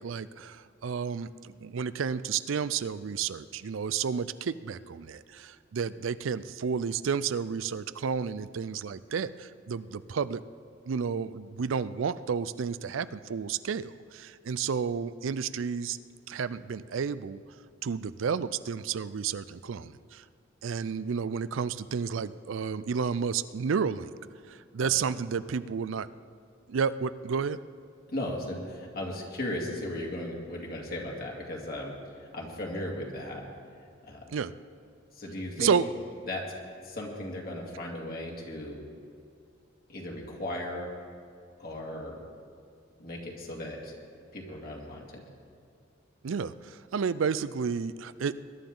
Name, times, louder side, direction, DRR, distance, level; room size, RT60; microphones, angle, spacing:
voice 1, 0.0-10.4 10.9-16.0 16.3-17.4 17.8-20.2 20.6-24.1 24.5-26.1 26.7-27.6 34.3-34.5 35.6-35.8 46.2-48.3, right 6 dB, 75° right, 15 dB, 0.4 m, -31 dB
voice 2, 28.1-33.5 34.0-34.3 35.1-35.7 36.3-36.4 36.8-38.8 39.9-40.9 41.6-42.2 43.0-43.9 44.3-45.2, left 1 dB, 50° left, -1 dB, 2.3 m, -36 dB
21.0 x 11.0 x 3.9 m, 2.3 s
head